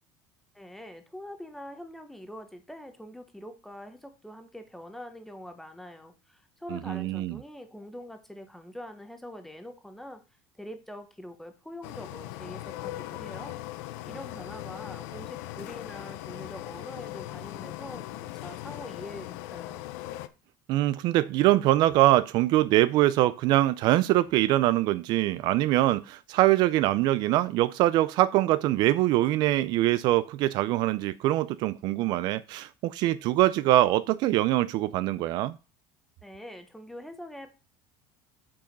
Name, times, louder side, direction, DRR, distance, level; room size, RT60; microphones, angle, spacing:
voice 1, 0.5-10.2 10.6-13.6 14.1-19.9 36.2-37.5, left 1 dB, 5° left, 1.0 m, -44 dB
voice 2, 6.7-7.4 20.7-35.6, right 15 dB, 55° right, 0.4 m, -23 dB
sound 1, 11.8-20.3, left 15 dB, 90° left, 0.6 m, -39 dB
7.5 x 4.8 x 5.2 m
cardioid pair, 160°, 9 cm